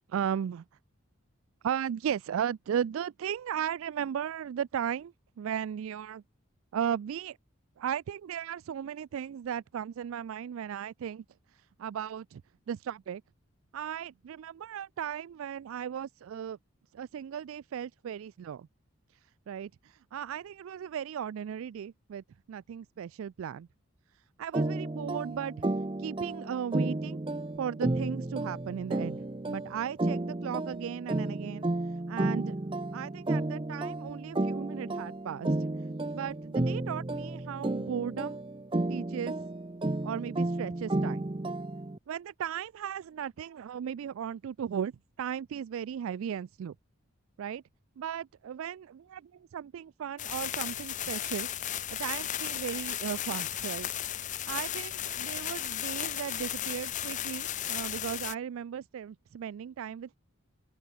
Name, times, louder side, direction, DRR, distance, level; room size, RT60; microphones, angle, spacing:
voice 1, 0.1-0.6 1.6-6.2 6.7-7.4 7.8-11.2 11.5-12.4 12.7-13.2 13.7-16.6 16.9-18.7 19.5-23.7 24.4-25.5 26.0-27.2 27.6-31.7 32.1-32.6 32.9-35.6 36.1-38.4 38.9-39.3 40.0-41.2 42.1-44.9 45.2-46.7 47.4-47.6 48.0-51.5 51.9-53.9 54.5-60.2, right 8 dB, 70° right, 0.3 m, -36 dB
sound 1, 24.5-42.0, right 2 dB, 25° right, 0.6 m, -32 dB
sound 2, 50.2-58.3, left 11 dB, 35° left, 0.5 m, -35 dB
open air
head